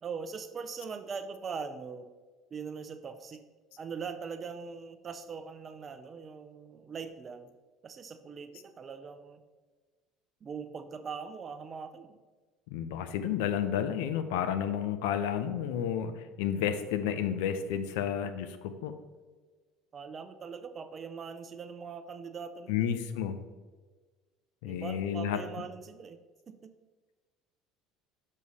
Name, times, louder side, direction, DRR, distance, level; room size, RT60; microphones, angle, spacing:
voice 1, 0.0-2.1 2.5-3.4 3.8-7.5 7.8-9.4 10.4-12.2 19.9-22.9 24.6-26.2 26.5-26.7, right 5 dB, 35° right, 10 dB, 0.6 m, -41 dB
voice 2, 12.7-19.0 22.7-23.4 24.6-25.7, left 9 dB, 80° left, 10 dB, 0.6 m, -31 dB
6.3 x 5.5 x 4.1 m, 1.4 s
supercardioid pair, 85°, 0 cm